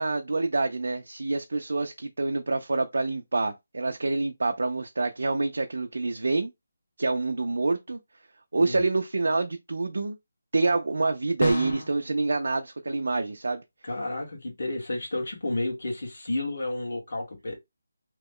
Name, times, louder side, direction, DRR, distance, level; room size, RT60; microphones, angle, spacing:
voice 1, 0.0-6.5 7.0-8.0 8.5-10.2 10.5-13.6, right 3 dB, 65° right, 0.4 m, -27 dB
sound 1, 11.4-11.9, equal, 30° left, 0.6 m, -29 dB
voice 2, 13.8-17.6, left 2 dB, 50° left, 1.4 m, -31 dB
3.0 x 2.1 x 3.5 m
hypercardioid pair, 180°, 0 cm